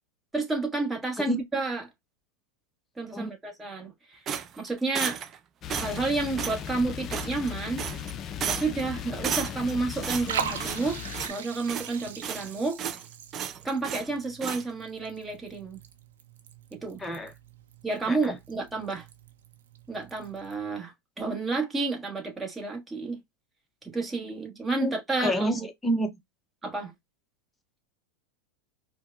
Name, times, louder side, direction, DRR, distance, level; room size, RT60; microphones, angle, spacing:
voice 1, 0.3-1.9 3.0-4.2 4.6-5.2 5.7-7.8 8.5-11.0 11.3-12.8 13.6-15.8 16.7-17.0 17.8-19.1 19.9-23.2 23.8-25.7 26.6-26.9, right 3 dB, 10° right, 1.2 m, -30 dB
sound 1, 4.3-5.4 5.7-6.1 6.4-6.6 7.1-7.5 7.8-8.1 8.4-8.8 9.2-9.7 10.0-10.9 11.1-11.4 11.7-12.5 12.8-13.0 13.3-14.1 14.4-14.6, right 8 dB, 30° right, 0.4 m, -33 dB
sound 2, 5.6-11.3, left 9 dB, 35° left, 0.4 m, -37 dB
Liquid, 9.1-20.6, right 8 dB, 85° right, 0.7 m, -41 dB
voice 2, 24.8-26.1, right 1 dB, 5° left, 0.7 m, -28 dB
4.5 x 2.1 x 2.4 m
supercardioid pair, 130°, 0 cm